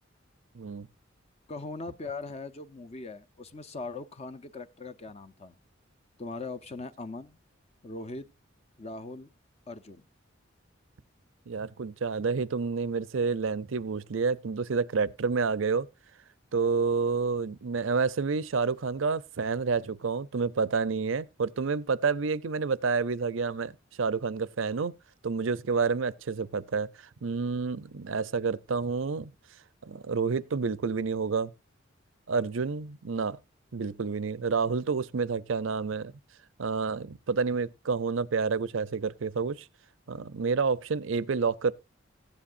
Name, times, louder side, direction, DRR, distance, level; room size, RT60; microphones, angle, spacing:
voice 1, 0.5-0.9 11.5-15.9 16.5-23.7 24.0-24.9 25.2-26.9 27.2-29.3 29.8-31.5 32.3-33.4 33.7-36.1 36.6-39.7 40.1-41.7, right 5 dB, 75° right, 0.6 m, -29 dB
voice 2, 1.5-5.6 6.2-7.4 7.8-8.3 8.8-9.3 9.7-10.0, left 3 dB, 35° left, 0.6 m, -40 dB
15.0 x 10.0 x 2.6 m
head